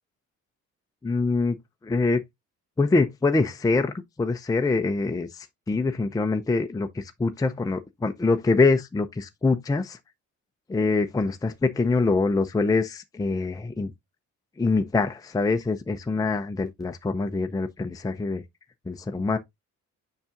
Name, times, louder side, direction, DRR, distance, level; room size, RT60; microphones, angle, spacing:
voice 1, 1.0-1.6 1.8-2.2 2.8-3.9 4.2-10.0 10.7-13.9 14.6-18.4 18.9-19.4, left 3 dB, 10° left, 0.5 m, -24 dB
7.0 x 5.7 x 2.5 m
cardioid pair, 90°, 30 cm